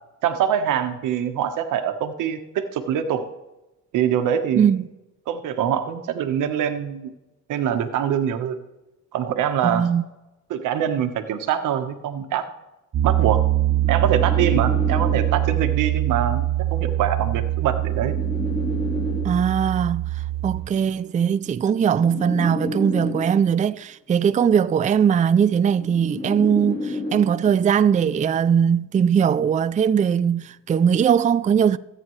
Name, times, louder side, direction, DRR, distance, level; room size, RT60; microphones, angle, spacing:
voice 1, 0.2-3.2 3.9-4.7 5.3-7.1 7.5-8.6 9.1-9.8 10.5-12.4 13.0-13.4 13.9-18.1, right 9 dB, 90° right, 1.2 m, -24 dB
voice 2, 4.6-4.9 9.6-10.0 19.2-20.1 20.4-31.8, right 7 dB, 25° right, 0.4 m, -20 dB
Piano, 12.9-20.6, right 14 dB, 50° right, 1.1 m, -23 dB
sound 1, 13.4-15.7 16.7-19.7 20.7-23.7 24.7-27.7, left 2 dB, 30° left, 3.4 m, -32 dB
23.0 x 9.0 x 3.2 m
cardioid pair, 90°, 30 cm